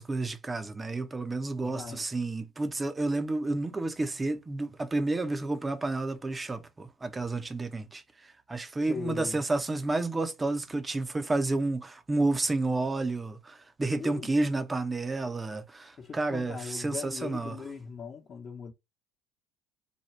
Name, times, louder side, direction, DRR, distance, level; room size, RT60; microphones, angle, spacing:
voice 1, 0.0-17.6, right 2 dB, 20° right, 0.7 m, -30 dB
voice 2, 1.6-2.0 8.9-9.4 14.0-14.3 16.0-18.7, left 5 dB, 40° left, 1.1 m, -39 dB
4.4 x 2.3 x 3.2 m
hypercardioid pair, 65°, 0 cm